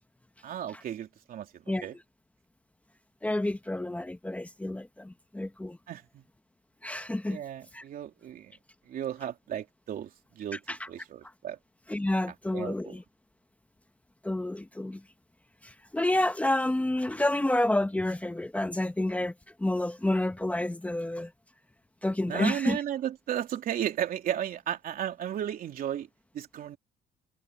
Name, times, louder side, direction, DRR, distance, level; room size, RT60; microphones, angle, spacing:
voice 1, 0.4-2.0 5.9-6.2 7.2-8.5 8.9-11.6 12.5-13.0 22.3-26.1 26.3-26.8, right 10 dB, 60° right, 3.3 m, -34 dB
voice 2, 3.2-5.8 6.8-7.4 7.7-7.8 10.7-10.9 11.9-13.0 14.2-15.0 15.6-19.3 19.6-21.3 22.0-22.8, left 1 dB, 10° left, 1.2 m, -29 dB
cardioid pair, 110°, 17 cm